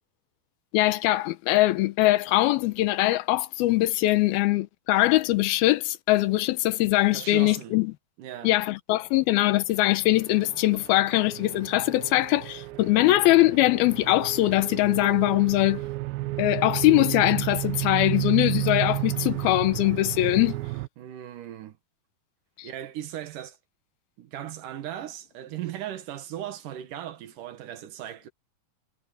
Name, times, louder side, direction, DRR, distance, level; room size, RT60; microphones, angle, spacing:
voice 1, 0.7-7.9 8.4-15.8 16.4-20.6 22.6-22.7, left 17 dB, 85° left, 2.8 m, -22 dB
voice 2, 7.1-7.7 8.2-8.6 21.0-21.8 22.6-23.6 24.2-28.3, right 11 dB, 70° right, 2.6 m, -37 dB
sound 1, 10.0-20.9, right 20 dB, 85° right, 2.4 m, -32 dB
omnidirectional pair, 4.2 m